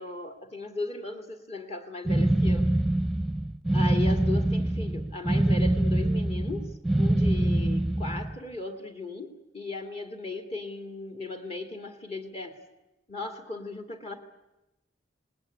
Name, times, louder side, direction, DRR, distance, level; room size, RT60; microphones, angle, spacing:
voice 1, 0.0-2.7 3.7-6.7 7.0-12.5 13.1-14.2, left 2 dB, 35° left, 5 dB, 2.2 m, -37 dB
strange noises in engine, 2.1-8.4, right 1 dB, ahead, 1.0 m, -24 dB
27.0 x 19.5 x 9.9 m, 0.98 s
head